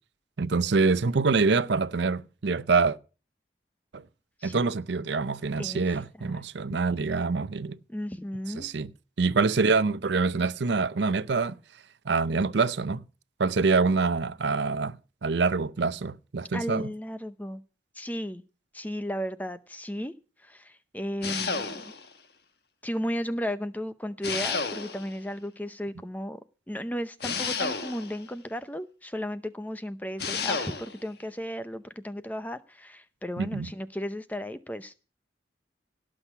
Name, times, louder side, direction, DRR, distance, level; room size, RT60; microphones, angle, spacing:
voice 1, 0.4-3.0 3.9-4.0 4.4-7.8 8.5-8.9 9.2-11.6 12.1-13.0 13.4-15.0 15.2-16.9 33.4-33.7, right 4 dB, 75° right, 0.6 m, -25 dB
voice 2, 5.6-6.4 6.7-6.8 7.9-8.7 16.5-17.6 18.0-18.4 18.7-20.1 20.4-21.7 22.8-26.4 26.7-35.0, equal, 10° left, 0.6 m, -35 dB
sound 1, 21.2-22.1 24.2-25.2 27.2-28.2 30.2-31.0, left 4 dB, 60° left, 1.4 m, -31 dB
17.5 x 6.3 x 7.0 m
head